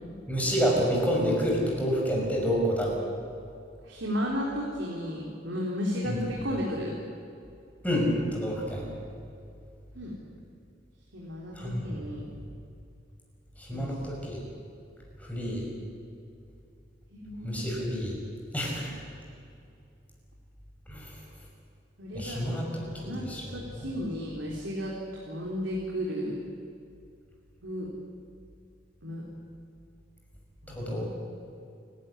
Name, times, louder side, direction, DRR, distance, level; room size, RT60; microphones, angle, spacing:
voice 1, 0.3-2.9 6.1-6.2 7.8-8.8 11.6-11.8 13.7-14.4 15.3-15.7 17.4-18.1 18.5-18.9 20.9-21.1 22.1-22.8 23.2-23.4 23.8-23.9 30.7-31.0, equal, 10° left, -2 dB, 6.2 m, -28 dB
voice 2, 3.8-6.9 9.9-10.1 11.1-12.3 13.7-13.9 17.1-17.6 22.0-25.0 25.3-26.5 27.6-27.9 29.0-29.3 30.6-31.0, equal, 85° right, -3 dB, 3.7 m, -34 dB
29.0 x 12.0 x 10.0 m, 2.5 s
head